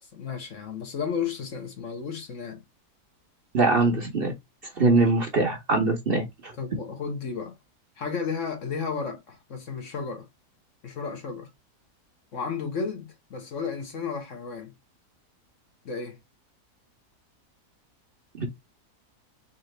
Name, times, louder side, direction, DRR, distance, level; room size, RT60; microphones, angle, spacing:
voice 1, 0.0-2.6 4.9-5.0 6.6-7.6 8.0-10.3 10.8-11.5 12.3-14.7 15.8-16.2, left 5 dB, 55° left, 1.3 m, -33 dB
voice 2, 3.5-4.3 4.8-6.5 18.4-18.5, right 3 dB, 45° right, 1.0 m, -22 dB
4.1 x 2.6 x 3.1 m
omnidirectional pair, 1.6 m